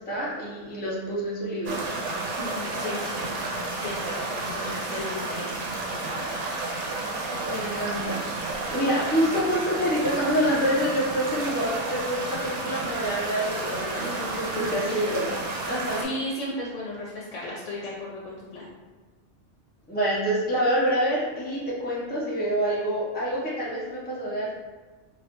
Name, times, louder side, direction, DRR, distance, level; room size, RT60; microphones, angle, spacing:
voice 1, 0.0-1.9 7.4-15.3 15.6-16.0 19.9-24.5, equal, 10° left, -7 dB, 0.5 m, -27 dB
sound 1, 1.6-16.0, right 2 dB, 75° right, 0.9 m, -31 dB
voice 2, 2.4-3.3 3.8-5.5 5.9-6.2 14.0-15.1 16.0-18.7, left 1 dB, 75° left, -5 dB, 0.9 m, -35 dB
3.1 x 2.3 x 2.9 m, 1.4 s
omnidirectional pair, 1.2 m